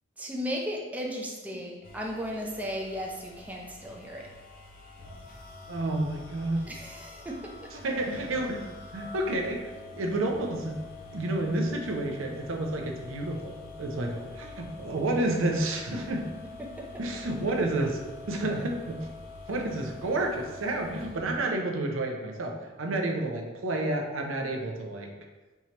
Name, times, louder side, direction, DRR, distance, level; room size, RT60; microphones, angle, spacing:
voice 1, 0.2-4.3 6.7-7.5 16.6-16.9, equal, 10° right, -2 dB, 0.5 m, -35 dB
sound 1, 1.8-21.4, left 3 dB, 45° left, 0.6 m, -46 dB
voice 2, 5.7-6.6 7.7-10.8 11.1-16.2 17.0-18.0 18.3-19.1 19.5-25.1, right 2 dB, 80° right, 2 dB, 0.6 m, -30 dB
4.6 x 2.8 x 2.9 m, 1.2 s
head